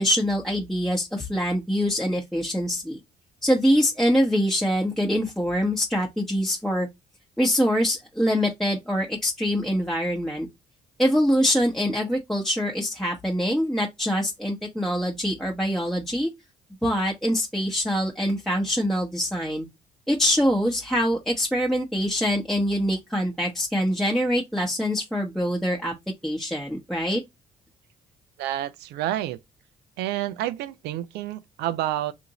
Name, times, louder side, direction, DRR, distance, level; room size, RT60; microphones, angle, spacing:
voice 1, 0.0-3.0 3.4-6.9 7.4-10.5 11.0-16.3 16.8-19.7 20.1-25.9 26.2-27.2, equal, ahead, 0.9 m, -24 dB
voice 2, 28.4-29.4 30.0-32.1, right 13 dB, 75° right, 0.4 m, -29 dB
3.5 x 2.6 x 2.9 m
hypercardioid pair, 55°, 17 cm